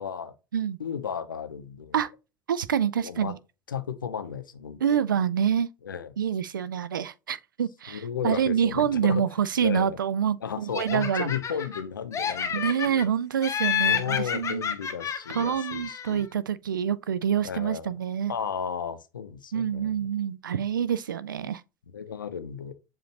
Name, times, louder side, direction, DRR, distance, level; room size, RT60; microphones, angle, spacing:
voice 1, 0.0-0.3 0.8-2.0 3.0-3.3 3.7-5.0 5.8-6.1 7.9-9.3 9.6-10.0 10.4-13.1 13.8-16.3 17.4-17.9 18.3-20.1 21.4-21.5 21.9-22.7, left 7 dB, 80° left, 0.5 m, -34 dB
voice 2, 2.5-3.4 4.8-5.7 6.2-11.3 12.5-14.6 15.3-18.3 19.5-21.6, right 8 dB, 80° right, 0.4 m, -26 dB
Laughter, 10.7-11.8 12.1-13.1 13.4-16.2, left 8 dB, 30° left, 0.7 m, -30 dB
7.4 x 2.5 x 2.8 m
figure-of-eight pair, 70°, 11 cm